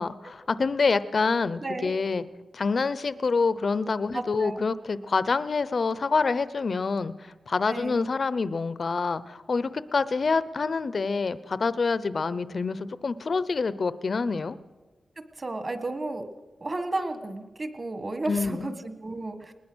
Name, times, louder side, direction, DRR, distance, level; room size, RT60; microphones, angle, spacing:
voice 1, 0.0-2.2 2.5-14.6 18.3-18.7, left 4 dB, 45° left, 15 dB, 0.7 m, -27 dB
voice 2, 1.6-1.9 4.1-4.6 7.7-8.0 15.4-16.3 16.6-19.5, right 2 dB, 30° right, 8 dB, 1.5 m, -33 dB
20.5 x 20.5 x 6.2 m, 1.3 s
wide cardioid pair, 170°, 0 cm